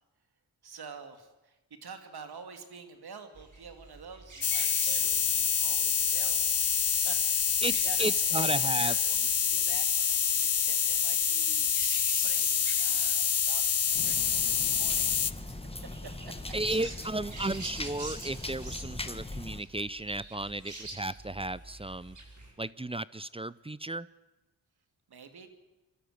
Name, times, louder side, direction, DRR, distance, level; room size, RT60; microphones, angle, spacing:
voice 1, 0.6-6.7 7.0-15.6 16.0-16.5 25.1-25.5, right 5 dB, 70° right, 7 dB, 2.7 m, -48 dB
sound 1, 3.3-22.5, right 2 dB, 50° right, 6.0 m, -47 dB
sound 2, 4.4-15.3, left 7 dB, 40° left, 0.7 m, -27 dB
voice 2, 7.6-9.0 16.5-22.2 22.6-24.1, right 2 dB, 15° right, 19 dB, 0.6 m, -34 dB
sound 3, 13.9-19.6, left 2 dB, 15° left, 1.6 m, -40 dB
25.0 x 13.0 x 9.5 m, 1.1 s
cardioid pair, 60°, 39 cm